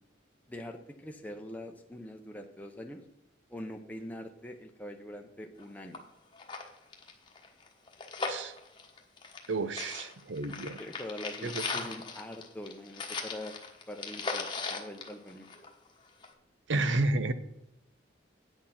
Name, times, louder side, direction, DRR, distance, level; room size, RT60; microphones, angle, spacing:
voice 1, 0.5-3.0 3.5-6.0 10.8-13.6 13.9-15.5, left 1 dB, 10° left, 3 dB, 0.7 m, -43 dB
sound 1, 5.6-5.7 5.9-6.0 6.3-9.5 9.8-15.9 16.2-16.3, left 4 dB, 25° left, 1.1 m, -38 dB
voice 2, 9.5-10.8 11.4-11.6 16.7-17.3, right 2 dB, 80° right, 12 dB, 0.7 m, -31 dB
8.9 x 6.6 x 5.7 m, 0.86 s
head